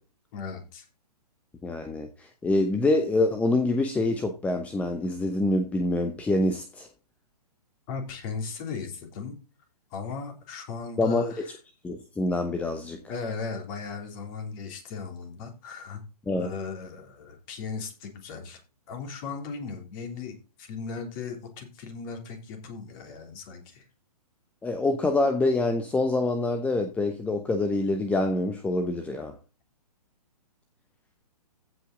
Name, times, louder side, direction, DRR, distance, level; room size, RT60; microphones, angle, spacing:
voice 1, 0.3-0.9 7.9-9.4 9.9-11.5 13.1-16.0 16.3-18.6 18.9-23.8, left 5 dB, 30° left, 3.2 m, -37 dB
voice 2, 1.6-6.9 11.0-11.4 11.8-13.0 16.3-16.5 24.6-29.3, left 2 dB, 5° left, 0.8 m, -26 dB
15.5 x 5.6 x 3.9 m
figure-of-eight pair, 125°, 21 cm